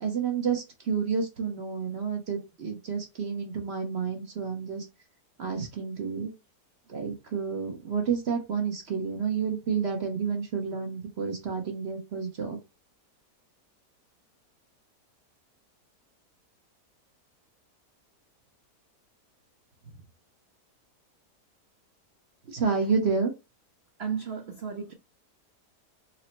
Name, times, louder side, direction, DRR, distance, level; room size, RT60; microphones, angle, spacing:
voice 1, 0.0-4.9 5.4-6.3 6.9-12.6 22.5-23.3, right 5 dB, 50° right, 0.9 m, -30 dB
voice 2, 24.0-24.9, right 7 dB, 75° right, 0.5 m, -34 dB
4.3 x 2.0 x 4.0 m
omnidirectional pair, 1.8 m